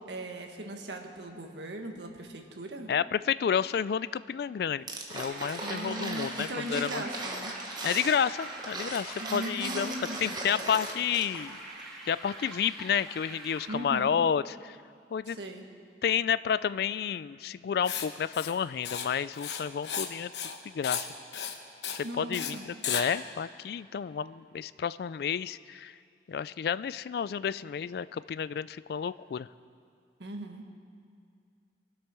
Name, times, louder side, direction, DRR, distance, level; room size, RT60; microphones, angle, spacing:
voice 1, 0.0-2.9 5.6-7.5 9.2-10.4 13.7-14.1 15.3-15.7 22.0-22.7 30.2-30.7, right 1 dB, 80° right, 3 dB, 1.4 m, -38 dB
voice 2, 2.9-4.8 5.1-7.0 7.8-11.6 12.1-14.8 15.1-15.4 16.0-20.3 20.6-21.1 21.9-22.6 22.9-25.9 26.3-29.5, left 7 dB, 60° left, 17 dB, 0.3 m, -30 dB
sound 1, 4.9-11.5 11.8-11.9, right 2 dB, 25° right, 1.3 m, -38 dB
sound 2, 5.2-13.7, right 2 dB, ahead, 2.1 m, -44 dB
Writing, 17.8-18.1 18.3-18.5 18.8-19.1 19.3-20.1 20.3-20.6 20.8-21.1 21.3-21.5 21.8-22.0 22.3-22.5 22.8-23.0, left 8 dB, 75° left, 1.0 m, -34 dB
22.0 x 8.0 x 6.1 m, 2.3 s
head